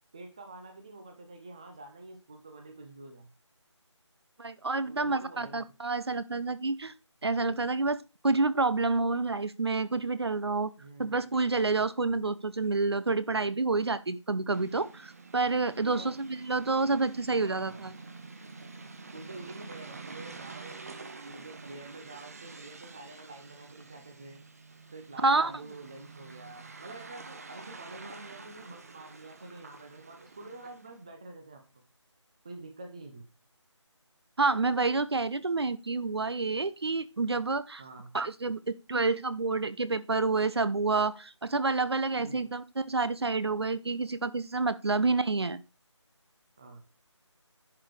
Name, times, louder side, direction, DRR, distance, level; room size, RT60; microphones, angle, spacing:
voice 1, 0.1-3.3 4.8-5.6 10.8-11.4 15.8-16.2 16.5-16.6 17.4-17.8 19.1-20.8 21.2-24.4 24.9-31.8 32.4-33.3 37.8-38.2 42.2-42.5 44.8-45.1 46.6-46.8, right 2 dB, 10° right, 5 dB, 0.6 m, -47 dB
voice 2, 4.4-6.9 7.2-10.7 11.0-17.9 25.2-25.5 34.4-37.8 38.1-45.6, right 3 dB, 55° right, 15 dB, 0.8 m, -28 dB
sound 1, 14.5-31.0, right 4 dB, 30° right, 0.9 m, -48 dB
10.5 x 4.9 x 4.8 m, 0.29 s
figure-of-eight pair, 165°, 16 cm